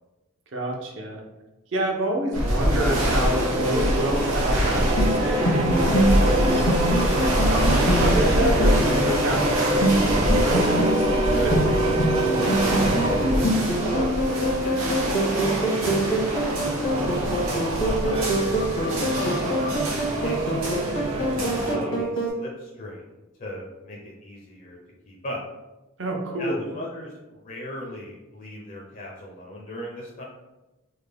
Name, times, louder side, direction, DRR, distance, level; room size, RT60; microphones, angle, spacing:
voice 1, 0.5-1.2 1.7-6.9 7.4-12.7 26.0-26.6, right 1 dB, 60° right, 1 dB, 0.6 m, -28 dB
sound 1, 2.3-21.7, equal, 85° right, 1.0 m, -25 dB
sound 2, 2.6-14.2 14.9-22.0, right 1 dB, 25° right, 0.3 m, -27 dB
sound 3, 4.7-22.3, right 1 dB, 85° left, 1.0 m, -26 dB
voice 2, 13.7-19.6 20.2-24.8 25.0-25.4 26.4-30.2, left 1 dB, 40° left, -3 dB, 0.4 m, -39 dB
3.4 x 2.1 x 3.3 m, 1.1 s
head